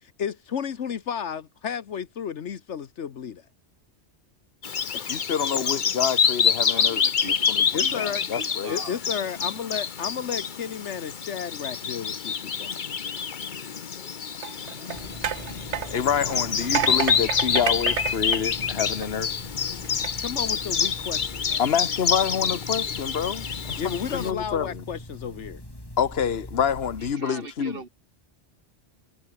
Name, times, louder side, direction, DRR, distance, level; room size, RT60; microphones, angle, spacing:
voice 1, 0.0-3.5 4.9-5.2 5.6-5.7 7.7-8.3 8.7-12.7 20.2-21.6 23.8-25.6, left 8 dB, 80° left, 1.4 m, -33 dB
Bird vocalization bird call bird song, 4.6-24.3, left 6 dB, 45° left, 1.0 m, -27 dB
voice 2, 5.1-8.7 15.9-19.3 21.6-23.8 24.1-24.8 26.0-27.8, left 7 dB, 60° left, 1.4 m, -27 dB
voice 3, 6.7-9.0 9.3-9.4 27.0-27.9, right 4 dB, 55° right, 2.0 m, -41 dB
sound 1, 14.3-19.3 19.8-20.1, right 9 dB, 75° right, 1.2 m, -31 dB
sound 2, 14.9-27.1, left 1 dB, 20° left, 5.6 m, -42 dB
omnidirectional pair, 1.2 m